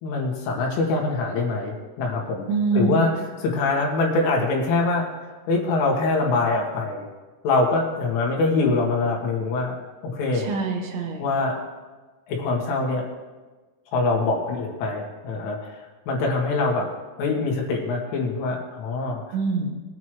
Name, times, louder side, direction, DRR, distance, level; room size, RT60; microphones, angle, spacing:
voice 1, 0.0-2.5 2.7-3.1 3.4-5.1 5.5-7.1 7.4-9.8 10.0-10.5 11.2-11.6 12.3-13.1 13.9-15.6 16.1-16.9 17.2-19.2, left 3 dB, 80° left, -1 dB, 4.5 m, -24 dB
voice 2, 2.5-3.1 10.3-11.2 19.3-19.8, right 4 dB, 70° right, 1 dB, 3.4 m, -25 dB
21.0 x 9.5 x 3.2 m, 1.3 s
omnidirectional pair, 5.7 m